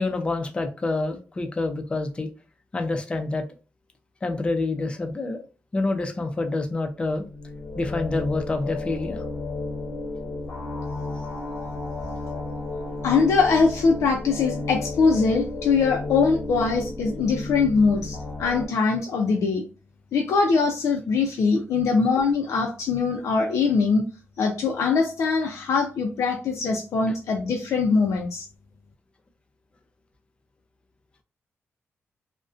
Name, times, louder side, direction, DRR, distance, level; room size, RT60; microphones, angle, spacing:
voice 1, 0.0-2.3 2.7-3.4 4.2-5.4 5.7-7.3 7.8-9.2, left 2 dB, 20° left, 6 dB, 0.4 m, -27 dB
sound 1, 7.2-18.7, left 2 dB, 50° left, 0.7 m, -33 dB
voice 2, 13.0-19.6 20.1-24.0 24.4-28.4, left 4 dB, 85° left, 2 dB, 0.4 m, -22 dB
2.4 x 2.1 x 2.4 m, 0.33 s
wide cardioid pair, 160°, 5 cm